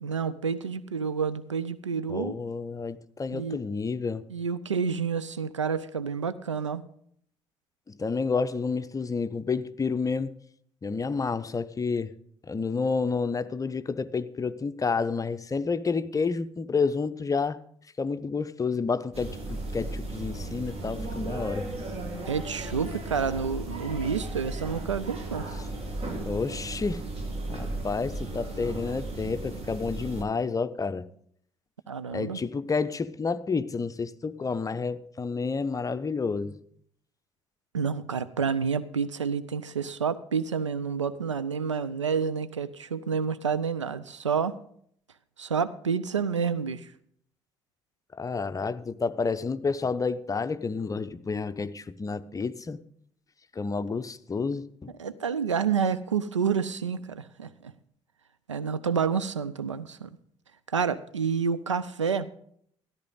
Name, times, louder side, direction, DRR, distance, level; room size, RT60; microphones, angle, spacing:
voice 1, 0.0-2.4 3.3-3.6 4.3-6.8 22.3-25.5 31.9-32.4 37.7-44.6 45.4-46.9 55.0-57.7 58.5-60.1 60.7-62.3, right 6 dB, 85° right, 0.4 m, -29 dB
voice 2, 2.1-4.3 7.9-10.3 10.8-12.1 12.5-17.6 18.0-21.7 26.3-27.0 27.5-31.1 32.1-36.6 48.2-52.8 53.6-54.9, left 4 dB, 25° left, 0.6 m, -30 dB
sound 1, 19.1-30.2, right 2 dB, 40° right, 2.3 m, -35 dB
13.5 x 11.5 x 3.8 m
figure-of-eight pair, 50°, 15 cm